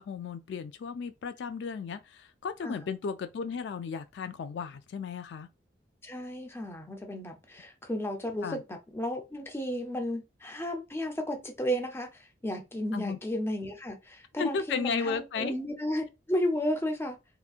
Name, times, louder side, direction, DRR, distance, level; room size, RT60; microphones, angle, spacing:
voice 1, 0.0-5.5 8.4-8.6 12.9-13.2 14.4-15.6, left 5 dB, 65° left, 0.3 m, -34 dB
voice 2, 6.0-17.2, equal, 15° left, 0.6 m, -33 dB
3.3 x 2.9 x 2.4 m
head